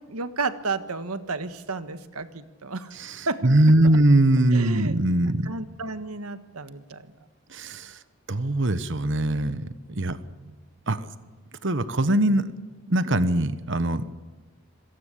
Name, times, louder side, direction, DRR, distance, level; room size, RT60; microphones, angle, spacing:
voice 1, 0.1-2.9 3.3-3.5 3.8-4.0 4.5-5.0 5.4-7.1 10.1-10.5, right 3 dB, 85° right, 11 dB, 1.5 m, -32 dB
voice 2, 2.9-5.5 7.5-8.0 8.3-10.2 10.9-11.1 11.6-12.5 12.9-14.0, right 1 dB, 55° right, 13 dB, 1.2 m, -22 dB
26.5 x 18.0 x 8.4 m, 1.3 s
head